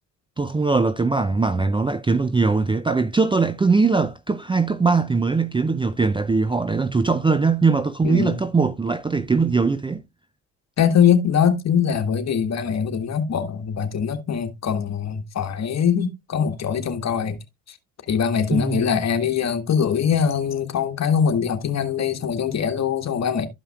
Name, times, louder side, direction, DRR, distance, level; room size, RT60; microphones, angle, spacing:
voice 1, 0.4-10.0 18.5-19.0, right 4 dB, 15° right, 0.5 m, -21 dB
voice 2, 8.0-8.4 10.8-17.4 17.7-17.8 18.1-23.5, left 7 dB, 45° left, 1.6 m, -22 dB
13.0 x 5.5 x 2.3 m
supercardioid pair, 70°, 37 cm